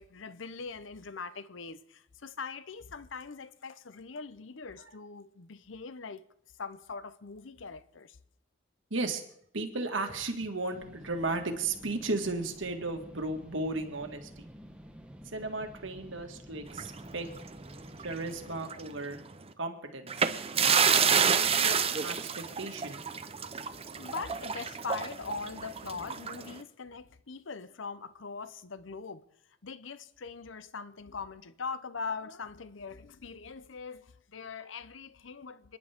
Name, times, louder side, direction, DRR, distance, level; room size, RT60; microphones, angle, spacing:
voice 1, 0.0-6.2 6.6-8.2 24.0-29.2 29.6-35.8, left 5 dB, 70° left, 0.8 m, -42 dB
voice 2, 8.9-9.2 9.5-14.5 15.3-17.3 18.0-19.2 19.6-20.1 20.7-23.0, right 2 dB, 70° right, 2.0 m, -35 dB
sound 1, 10.7-18.6, equal, 5° right, 1.2 m, -51 dB
sound 2, 16.7-18.3 18.6-18.8 20.1-26.6, right 6 dB, 30° right, 0.8 m, -29 dB
29.5 x 10.5 x 3.6 m
head